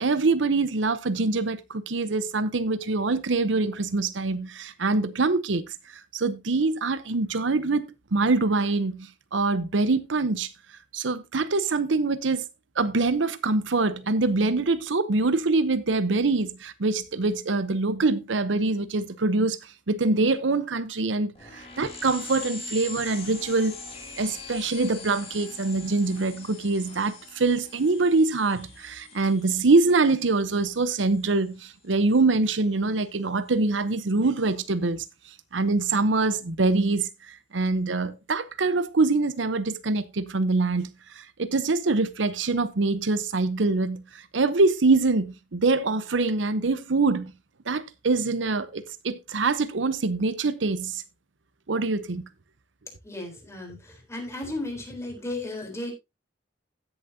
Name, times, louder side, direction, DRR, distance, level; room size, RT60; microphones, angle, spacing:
voice 1, 0.0-5.6 6.1-10.5 10.9-12.4 12.8-19.6 19.9-23.8 24.2-35.0 35.5-44.0 44.3-47.3 47.7-51.0 51.7-52.2, right 3 dB, 85° right, 0.8 m, -24 dB
sound 1, 21.4-31.5, left 3 dB, 35° left, 2.8 m, -42 dB
voice 2, 53.0-55.9, left 2 dB, 15° left, 3.8 m, -35 dB
16.0 x 7.1 x 2.7 m
head